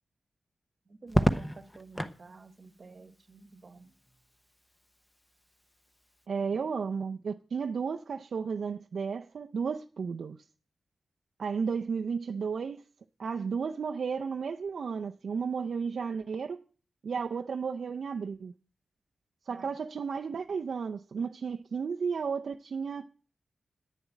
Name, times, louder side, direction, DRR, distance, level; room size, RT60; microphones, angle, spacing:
voice 1, 0.9-3.9 19.5-19.7, right 3 dB, 40° right, 1.2 m, -51 dB
Crackle, 1.1-2.2 3.8-4.4, equal, 10° left, 0.8 m, -29 dB
voice 2, 6.3-10.4 11.4-12.8 13.2-16.6 17.0-18.5 19.5-23.0, right 5 dB, 60° right, 0.5 m, -33 dB
10.0 x 7.2 x 9.3 m
wide cardioid pair, 170°, 0 cm